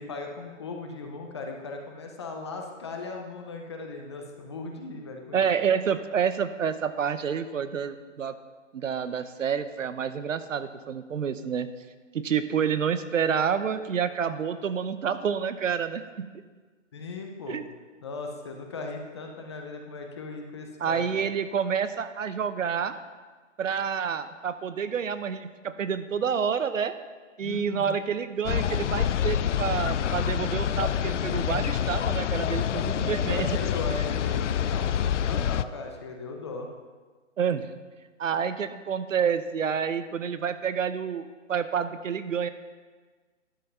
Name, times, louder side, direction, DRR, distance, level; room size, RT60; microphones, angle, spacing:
voice 1, 0.0-5.4 16.9-17.6 18.0-21.2 27.4-28.0 33.2-36.7, left 3 dB, 20° left, 2 dB, 0.7 m, -38 dB
voice 2, 5.3-8.3 8.7-11.7 12.1-16.3 17.5-17.6 20.8-22.9 23.6-26.9 27.4-33.6 37.4-37.7 38.2-42.5, right 7 dB, 80° right, 12 dB, 0.8 m, -28 dB
sound 1, 28.4-35.6, left 9 dB, 70° left, 0.5 m, -27 dB
11.5 x 5.6 x 5.5 m, 1.4 s
hypercardioid pair, 160°, 38 cm